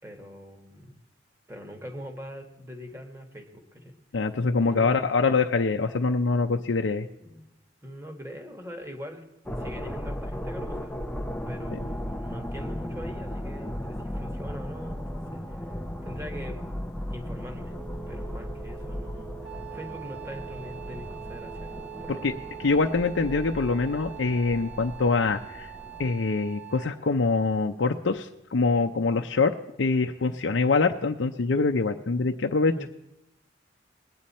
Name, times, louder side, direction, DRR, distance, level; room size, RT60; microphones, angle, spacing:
voice 1, 0.0-1.0 1.5-4.0 4.6-5.1 7.2-7.5 7.8-9.2 9.6-11.0 11.5-15.7 16.0-16.6 17.1-17.8 18.1-22.4 32.7-32.9, equal, 15° right, 4 dB, 1.5 m, -42 dB
voice 2, 4.1-7.1 11.7-11.8 22.2-22.3 22.6-25.7 26.0-29.5 29.8-32.9, left 4 dB, 80° left, 3 dB, 0.6 m, -24 dB
sound 1, 9.5-26.1, equal, 5° left, 0.6 m, -36 dB
Telephone, 17.7-24.5, right 8 dB, 75° right, 1.0 m, -45 dB
Wind instrument woodwind instrument, 19.4-27.1, right 15 dB, 60° right, 2.2 m, -45 dB
20.5 x 9.2 x 4.2 m, 0.86 s
head